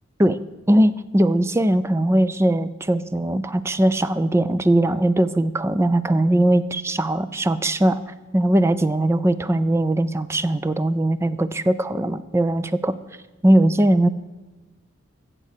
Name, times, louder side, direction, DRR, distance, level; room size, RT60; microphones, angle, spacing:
voice 1, 0.7-8.0 8.3-12.9 13.4-14.1, right 1 dB, 15° right, 14 dB, 0.4 m, -20 dB
15.0 x 7.5 x 6.6 m, 1.2 s
head